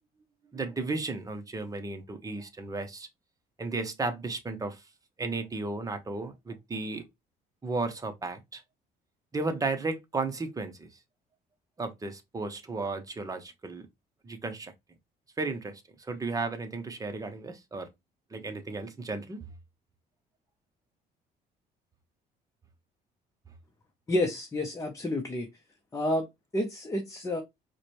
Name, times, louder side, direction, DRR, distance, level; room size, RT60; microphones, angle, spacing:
voice 1, 0.5-3.1 3.6-4.8 5.2-7.1 7.6-8.6 9.3-10.9 11.8-13.9 14.2-14.7 15.4-17.9 18.3-19.5, right 3 dB, 20° right, 0.8 m, -34 dB
voice 2, 24.1-25.5 25.9-26.3 26.5-27.4, left 1 dB, 20° left, 0.8 m, -29 dB
4.8 x 2.2 x 3.0 m
cardioid pair, 110°, 17 cm